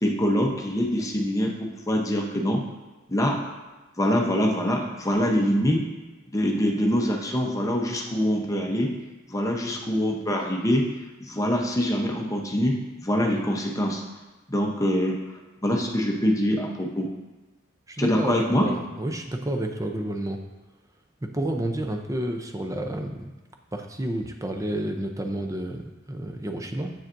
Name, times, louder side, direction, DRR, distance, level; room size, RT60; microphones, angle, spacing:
voice 1, 0.0-2.6 3.1-3.4 4.0-5.8 6.3-8.9 9.3-10.8 11.2-14.0 14.5-15.2 15.6-17.1 18.0-18.7, equal, 15° left, 0 dB, 0.8 m, -24 dB
voice 2, 17.9-20.4 21.2-23.3 23.7-26.9, right 1 dB, 15° right, 4 dB, 0.5 m, -30 dB
7.3 x 7.0 x 2.6 m, 1.1 s
head